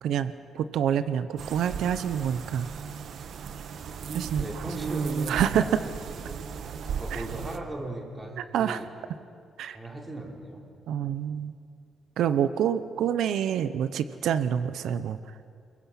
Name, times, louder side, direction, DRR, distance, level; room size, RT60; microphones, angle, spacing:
voice 1, 0.0-2.7 4.1-4.6 5.3-5.8 7.1-7.2 8.4-8.8 9.6-9.8 10.9-11.5 12.2-15.2, right 9 dB, 80° right, 12 dB, 0.8 m, -27 dB
sound 1, 1.4-7.6, right 6 dB, 60° right, 1.2 m, -35 dB
voice 2, 4.3-5.9 6.2-6.4 6.9-8.9 9.7-10.6, right 1 dB, 15° right, 1 dB, 3.7 m, -38 dB
29.5 x 22.0 x 5.8 m, 2.3 s
cardioid pair, 120°, 0 cm